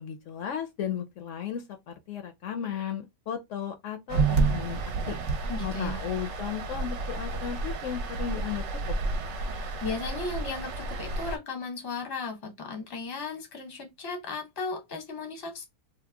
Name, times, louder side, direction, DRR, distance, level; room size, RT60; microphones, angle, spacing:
voice 1, 0.0-4.8 5.0-5.2 5.6-8.9, left 9 dB, 70° left, 0.9 m, -35 dB
sound 1, 4.1-11.4, right 3 dB, 65° right, 0.8 m, -30 dB
voice 2, 5.4-6.0 9.5-15.6, left 3 dB, 20° left, 0.7 m, -36 dB
2.9 x 2.1 x 3.3 m
omnidirectional pair, 1.4 m